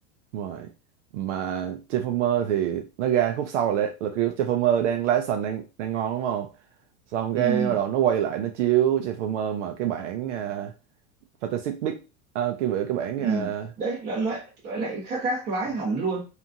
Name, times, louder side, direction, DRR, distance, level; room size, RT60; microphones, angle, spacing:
voice 1, 0.3-0.7 1.1-6.5 7.1-10.7 11.4-12.0 12.3-13.7, right 10 dB, 55° right, 0.5 m, -26 dB
voice 2, 7.3-7.7 13.2-13.5 13.8-16.2, right 3 dB, 20° right, 1.0 m, -28 dB
2.9 x 2.4 x 2.6 m
supercardioid pair, 175°, 43 cm